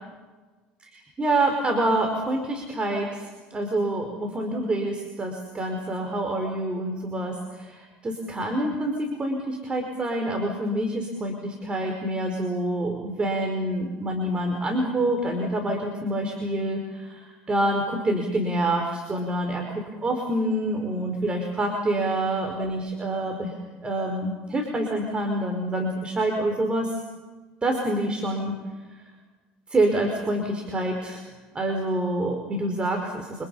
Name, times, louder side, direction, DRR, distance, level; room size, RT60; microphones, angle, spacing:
voice 1, 0.9-23.5 23.8-27.0 27.6-28.5 29.7-31.2 31.5-33.4, right 1 dB, 25° right, 3 dB, 4.9 m, -27 dB
29.0 x 27.0 x 5.7 m, 1.3 s
supercardioid pair, 90°, 4 cm